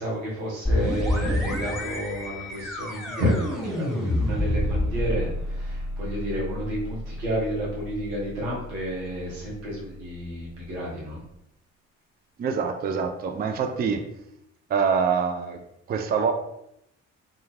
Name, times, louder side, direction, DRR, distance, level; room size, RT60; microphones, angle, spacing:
voice 1, 0.0-5.3 5.6-11.2, equal, 90° right, -4 dB, 0.9 m, -30 dB
sound 1, 0.6-10.2, left 1 dB, ahead, 0.8 m, -29 dB
voice 2, 12.4-14.0 14.7-15.6 15.9-16.3, right 6 dB, 25° right, 6 dB, 0.4 m, -25 dB
2.4 x 2.3 x 3.2 m, 0.79 s
hypercardioid pair, 50°, 36 cm